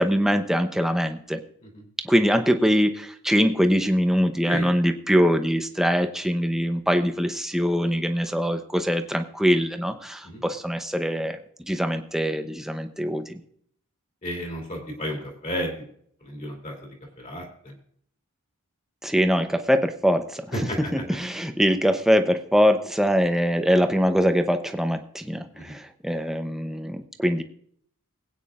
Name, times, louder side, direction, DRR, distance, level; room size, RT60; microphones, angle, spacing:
voice 1, 0.0-1.4 2.0-11.4 11.7-13.4 19.0-20.6 20.9-27.4, equal, ahead, 6 dB, 0.7 m, -23 dB
voice 2, 14.2-15.7 16.2-16.7 17.2-17.7 20.5-20.9 25.5-25.7, equal, 35° left, 0 dB, 2.9 m, -32 dB
21.0 x 9.0 x 2.5 m, 0.64 s
head